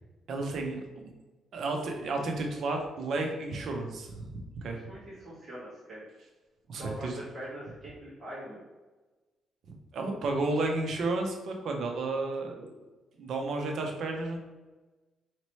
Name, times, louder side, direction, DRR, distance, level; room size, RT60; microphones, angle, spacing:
voice 1, 0.3-0.8 1.5-4.2 4.6-4.8 6.7-7.1 9.9-12.7 13.2-14.4, right 2 dB, 65° right, 2 dB, 0.7 m, -32 dB
voice 2, 4.6-6.0 6.8-8.6, right 1 dB, 40° right, -10 dB, 1.4 m, -43 dB
4.1 x 2.9 x 3.1 m, 1.2 s
cardioid pair, 90°, 0 cm